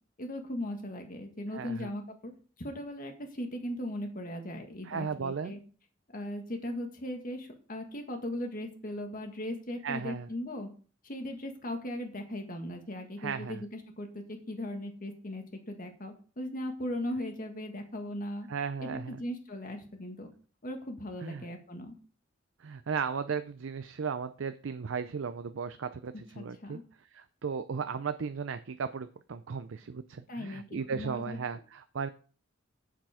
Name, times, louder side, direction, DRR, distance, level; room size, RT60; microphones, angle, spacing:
voice 1, 0.2-2.3 2.6-5.6 6.1-10.7 11.0-18.5 18.8-20.3 20.6-21.9 26.4-26.8 30.3-31.4, left 1 dB, 45° left, 4 dB, 1.8 m, -38 dB
voice 2, 1.5-1.9 4.8-5.6 9.8-10.3 13.2-13.6 18.5-19.2 21.2-21.5 22.6-26.8 27.1-32.1, right 6 dB, 75° right, 11 dB, 0.5 m, -36 dB
7.5 x 7.3 x 4.9 m, 0.40 s
head